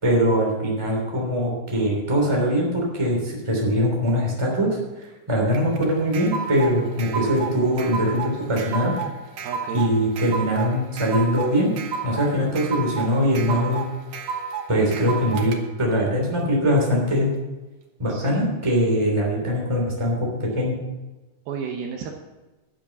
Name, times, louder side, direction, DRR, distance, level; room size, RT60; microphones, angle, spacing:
voice 1, 0.0-4.8 5.3-8.9 9.7-11.8 12.0-13.8 14.7-17.3 18.0-20.7, equal, 10° right, -2 dB, 2.5 m, -22 dB
sound 1, 5.5-15.6, right 6 dB, 90° right, 1.4 m, -31 dB
voice 2, 9.4-9.9 18.1-18.4 21.5-22.2, right 6 dB, 75° right, 2 dB, 2.6 m, -32 dB
11.5 x 7.6 x 7.1 m, 1.1 s
omnidirectional pair, 4.8 m